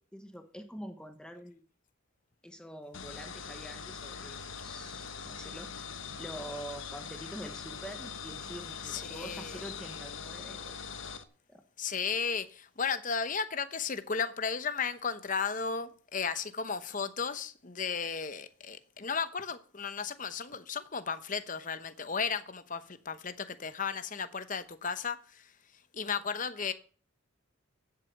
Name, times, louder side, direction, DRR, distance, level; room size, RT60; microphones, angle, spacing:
voice 1, 0.1-1.6 2.4-5.7 6.1-10.7 11.5-11.6, equal, 5° left, 1.0 m, -45 dB
sound 1, 2.9-11.2, left 6 dB, 70° left, 1.1 m, -42 dB
voice 2, 8.8-9.6 11.8-25.5 25.9-26.7, left 5 dB, 40° left, 0.9 m, -34 dB
16.0 x 7.8 x 6.6 m
head